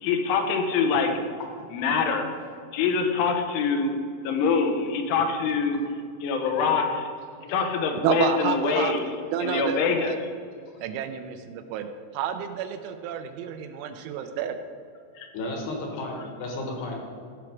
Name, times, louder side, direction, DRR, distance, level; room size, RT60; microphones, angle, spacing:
voice 1, 0.0-1.1 1.7-2.3 2.7-3.9 4.3-5.8 6.2-7.1 7.5-9.0 9.4-10.1 15.2-15.3, left 5 dB, 85° left, 5 dB, 3.4 m, -24 dB
voice 2, 8.0-8.9 9.3-10.2 10.8-11.9 12.1-14.6, right 8 dB, 85° right, 7 dB, 2.9 m, -29 dB
voice 3, 15.3-17.0, left 2 dB, 70° left, 0 dB, 3.1 m, -33 dB
13.5 x 4.7 x 5.9 m, 2.3 s
omnidirectional pair, 5.6 m